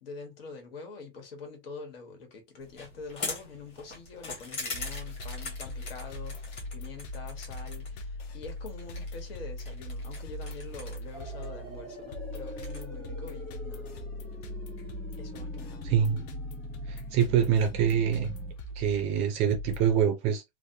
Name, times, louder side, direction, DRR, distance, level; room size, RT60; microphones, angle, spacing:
voice 1, 0.0-14.2 15.2-15.9, left 4 dB, 80° left, 1.5 m, -45 dB
sound 1, 2.6-12.8, left 3 dB, 20° left, 1.2 m, -43 dB
sound 2, 4.7-20.0, left 1 dB, 45° left, 0.6 m, -40 dB
sound 3, 11.1-18.5, right 1 dB, 5° left, 0.8 m, -45 dB
voice 2, 15.8-16.3 16.9-18.3 18.8-20.4, right 8 dB, 20° right, 0.4 m, -25 dB
3.2 x 2.2 x 2.7 m
supercardioid pair, 170°, 29 cm